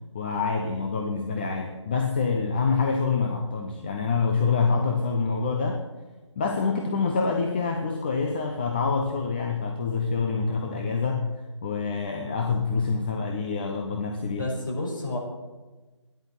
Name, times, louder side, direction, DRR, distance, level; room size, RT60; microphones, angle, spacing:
voice 1, 0.1-5.8 6.4-11.3 11.6-14.5, left 4 dB, 20° left, 2 dB, 0.9 m, -26 dB
voice 2, 14.3-15.2, left 2 dB, 40° left, -2 dB, 5.7 m, -30 dB
14.5 x 10.5 x 7.4 m, 1.2 s
figure-of-eight pair, 155°, 16 cm